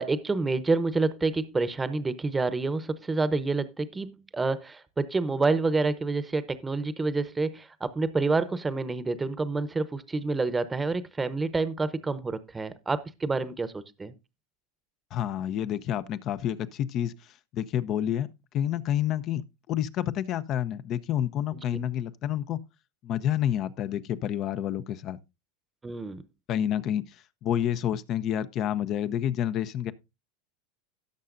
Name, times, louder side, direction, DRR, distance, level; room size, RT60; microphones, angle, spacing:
voice 1, 0.0-14.1 21.7-21.8 25.8-26.2, right 3 dB, 15° right, 0.9 m, -28 dB
voice 2, 15.1-17.1 17.5-18.3 18.5-22.6 23.0-25.2 26.5-27.0 27.4-29.9, left 10 dB, 45° left, 0.7 m, -29 dB
17.0 x 6.5 x 2.6 m
hypercardioid pair, 95°, 0 cm